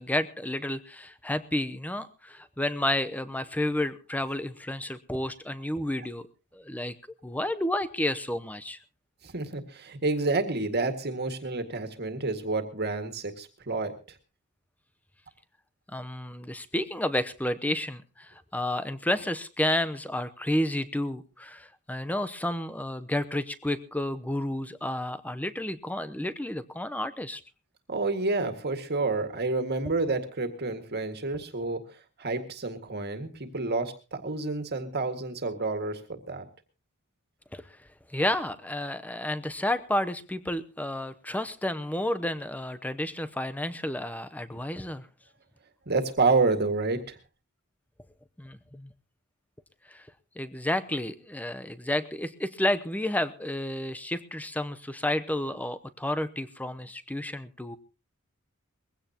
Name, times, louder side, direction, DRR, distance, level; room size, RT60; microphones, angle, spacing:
voice 1, 0.0-6.3 6.5-6.9 7.2-8.8 15.9-27.4 37.5-37.6 38.1-45.1 48.4-48.9 49.9-50.1 50.4-57.8, left 1 dB, 5° left, 11 dB, 0.8 m, -31 dB
voice 2, 9.2-13.9 27.9-31.8 32.2-36.5 45.9-47.2, right 3 dB, 50° right, 7 dB, 2.0 m, -29 dB
21.5 x 16.0 x 2.9 m, 0.32 s
head